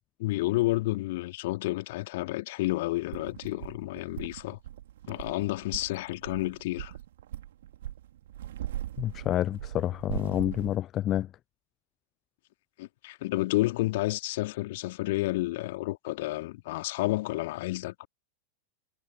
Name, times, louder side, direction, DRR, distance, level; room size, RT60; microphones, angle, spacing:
voice 1, 0.2-4.6 5.1-6.9 12.8-18.1, left 19 dB, 50° left, 2.8 m, -30 dB
sound 1, 3.1-10.8, right 13 dB, 60° right, 4.3 m, -40 dB
voice 2, 9.0-11.3, left 12 dB, 30° left, 0.4 m, -28 dB
figure-of-eight pair, 90°, 0 cm